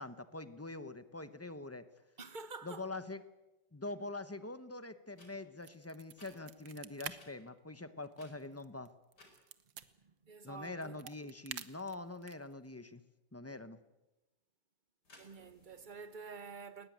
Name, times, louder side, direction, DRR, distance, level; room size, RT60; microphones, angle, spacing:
voice 1, 0.0-1.8 2.6-3.2 3.7-8.9 10.4-13.0 13.3-13.8, left 2 dB, 15° left, 0.5 m, -44 dB
voice 2, 2.2-2.9 9.8-11.0 15.2-16.9, right 4 dB, 30° right, 1.1 m, -49 dB
sound 1, 5.1-5.3 6.2-6.3 7.1-7.3 8.1-8.7 9.1-9.4 15.0-16.1, left 2 dB, 60° left, 5.4 m, -61 dB
sound 2, 5.6-7.2 7.5-7.6 8.0-9.9 10.7-12.5, right 10 dB, 80° right, 1.8 m, -48 dB
21.0 x 20.0 x 9.3 m
omnidirectional pair, 2.0 m